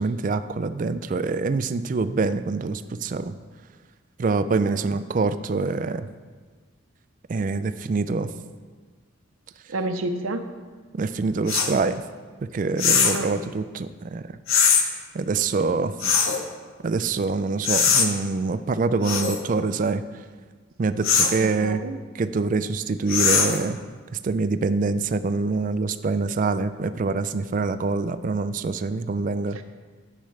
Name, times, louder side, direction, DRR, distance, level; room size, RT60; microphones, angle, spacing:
voice 1, 0.0-3.4 4.2-6.1 7.3-8.3 10.9-12.0 12.4-14.4 15.1-16.0 16.8-20.0 20.8-21.8 22.1-23.8 24.1-29.6, right 4 dB, 40° right, 12 dB, 0.3 m, -25 dB
voice 2, 4.7-5.0 9.7-10.4 13.1-13.4 16.0-16.1 21.4-21.9 29.5-29.6, right 2 dB, 85° right, 8 dB, 0.7 m, -30 dB
sound 1, 11.5-11.7 12.8-13.2 14.5-14.8 16.0-16.4 17.6-18.1 19.0-19.4 21.0-21.4 23.1-23.6, left 6 dB, 80° left, 0.8 m, -20 dB
10.0 x 7.5 x 3.2 m, 1.5 s
head